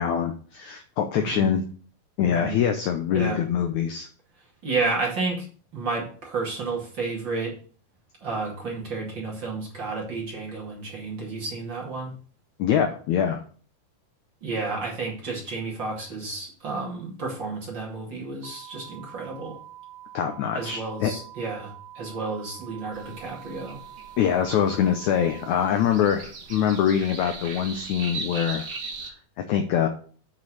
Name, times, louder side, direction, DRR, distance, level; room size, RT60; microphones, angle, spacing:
voice 1, 0.0-1.6 2.2-4.1 12.6-13.4 20.1-21.1 24.2-28.7 29.4-29.9, left 8 dB, 80° left, 6 dB, 1.7 m, -24 dB
voice 2, 1.1-1.5 2.2-2.6 3.1-3.4 4.6-5.5 5.7-7.6 8.2-12.1 14.4-19.6 20.5-23.8, right 3 dB, 35° right, -3 dB, 2.5 m, -31 dB
sound 1, 18.4-25.6, right 13 dB, 60° right, 2.6 m, -45 dB
sound 2, 22.9-29.1, right 4 dB, 85° right, 0.9 m, -39 dB
8.1 x 5.2 x 6.2 m, 0.43 s
omnidirectional pair, 4.4 m